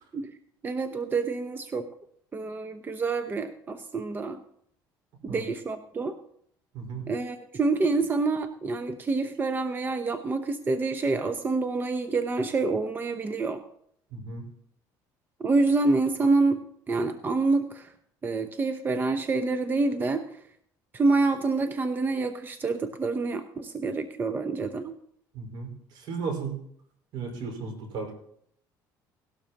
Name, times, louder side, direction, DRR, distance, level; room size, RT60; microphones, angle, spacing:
voice 1, 0.6-1.9 2.3-4.4 5.3-6.2 7.1-13.6 15.4-16.6 16.9-17.9 18.2-20.2 20.9-25.0, right 3 dB, 25° right, 8 dB, 0.8 m, -27 dB
voice 2, 6.7-7.1 14.1-14.4 25.3-26.6 27.1-28.1, right 4 dB, 70° right, 3 dB, 5.0 m, -35 dB
18.0 x 12.0 x 3.0 m, 0.68 s
cardioid pair, 110°, 8 cm